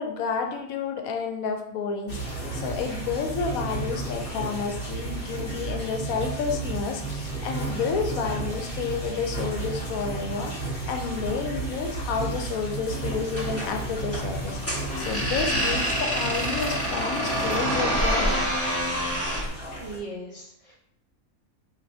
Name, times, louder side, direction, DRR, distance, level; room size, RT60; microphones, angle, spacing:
voice 1, 0.0-18.4, left 5 dB, 80° left, 4 dB, 1.0 m, -30 dB
sound 1, 2.1-20.0, right 3 dB, 45° left, 1.2 m, -33 dB
sound 2, 13.3-19.5, equal, 10° left, 0.8 m, -27 dB
voice 2, 19.8-20.8, right 2 dB, 70° right, -5 dB, 0.3 m, -38 dB
4.4 x 2.6 x 2.6 m, 0.76 s
omnidirectional pair, 1.5 m